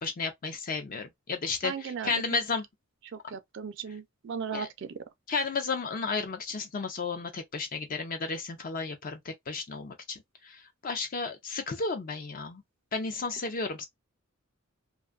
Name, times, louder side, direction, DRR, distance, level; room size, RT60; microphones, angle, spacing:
voice 1, 0.0-2.6 4.5-4.7 5.3-12.6 12.9-13.9, left 4 dB, 40° left, 0.4 m, -33 dB
voice 2, 1.6-2.1 3.3-4.7, right 7 dB, 60° right, 0.4 m, -36 dB
2.5 x 2.3 x 2.3 m
head